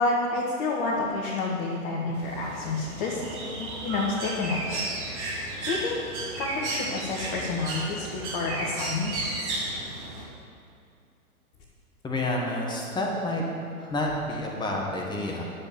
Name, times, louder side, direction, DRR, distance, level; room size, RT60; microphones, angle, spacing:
voice 1, 0.0-4.9 5.2-6.0 6.4-9.6, left 3 dB, 35° left, -4 dB, 1.7 m, -29 dB
Bird, 2.1-10.2, right 2 dB, 50° right, 3.3 m, -34 dB
voice 2, 12.0-13.4 13.8-15.4, left 1 dB, 10° left, -2 dB, 1.6 m, -29 dB
10.5 x 7.4 x 7.1 m, 2.4 s
figure-of-eight pair, 110°, 43 cm